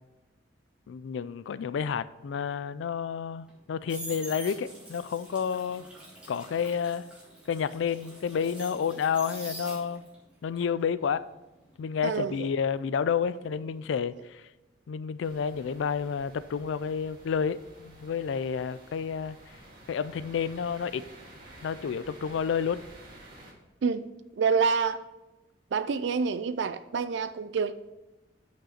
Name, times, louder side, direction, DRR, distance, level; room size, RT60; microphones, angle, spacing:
voice 1, 0.9-5.8 6.3-7.1 7.5-10.0 10.4-11.2 11.8-14.4 14.9-19.4 19.9-21.0 21.6-22.8, left 7 dB, 80° left, 16 dB, 0.3 m, -30 dB
sound 1, 3.5-10.2 10.5-13.4 13.7-14.0, right 1 dB, 5° right, 1.8 m, -45 dB
voice 2, 12.0-12.5 23.8-24.1 24.4-25.0 25.7-27.7, right 5 dB, 70° right, 12 dB, 0.4 m, -27 dB
sound 2, 15.2-23.5, right 1 dB, 50° right, 1.9 m, -51 dB
6.4 x 5.3 x 5.7 m, 1.0 s
head